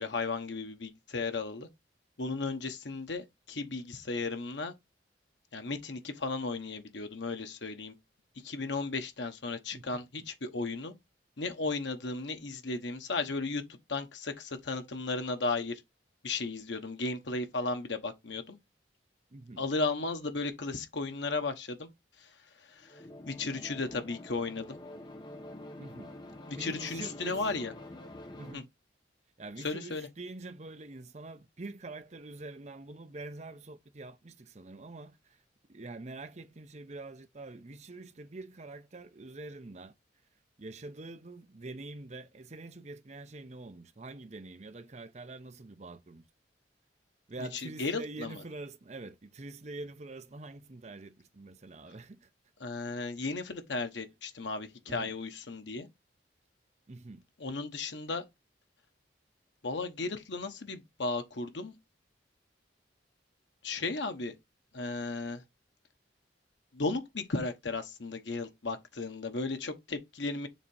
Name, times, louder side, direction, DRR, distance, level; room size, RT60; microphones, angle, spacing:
voice 1, 0.0-1.7 2.2-4.7 5.5-7.9 8.4-10.9 11.4-13.6 13.9-15.8 16.2-18.6 19.6-21.9 22.8-23.0 23.3-24.8 26.5-27.7 28.5-28.6 29.6-30.1 47.5-48.4 52.6-55.9 57.4-58.2 59.6-61.8 63.6-64.3 64.7-65.4 66.7-70.5, left 3 dB, 80° left, 1.1 m, -35 dB
voice 2, 9.7-10.3 19.3-19.6 25.8-26.2 26.6-27.5 28.4-28.7 29.4-35.4 35.7-39.9 40.6-46.2 47.3-52.3 54.9-55.1 56.9-57.2, right 2 dB, 40° right, 0.7 m, -45 dB
sound 1, 22.8-28.6, left 1 dB, 25° left, 0.9 m, -46 dB
7.2 x 2.8 x 5.4 m
head